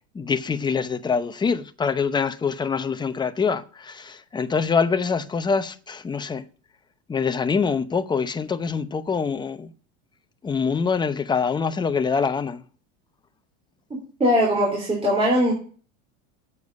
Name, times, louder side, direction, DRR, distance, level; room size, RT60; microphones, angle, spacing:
voice 1, 0.1-6.4 7.1-9.7 10.4-12.6, left 5 dB, 15° left, 0.7 m, -25 dB
voice 2, 14.2-15.5, equal, 15° right, 3.4 m, -20 dB
8.2 x 7.0 x 8.5 m
supercardioid pair, 130°, 33 cm